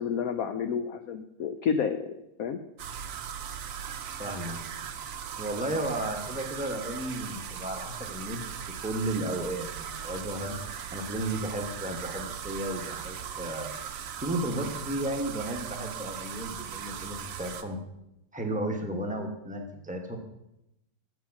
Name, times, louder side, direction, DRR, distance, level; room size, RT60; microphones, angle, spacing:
voice 1, 0.0-2.1 2.4-2.6, left 7 dB, 75° left, 8 dB, 0.8 m, -30 dB
sound 1, 2.8-17.6, right 8 dB, 65° right, 0.8 m, -39 dB
voice 2, 4.2-4.6 5.4-10.6 10.9-13.7 14.2-17.8 18.3-20.2, right 1 dB, 5° right, 2 dB, 0.7 m, -33 dB
8.2 x 7.9 x 5.8 m, 0.85 s
omnidirectional pair, 2.1 m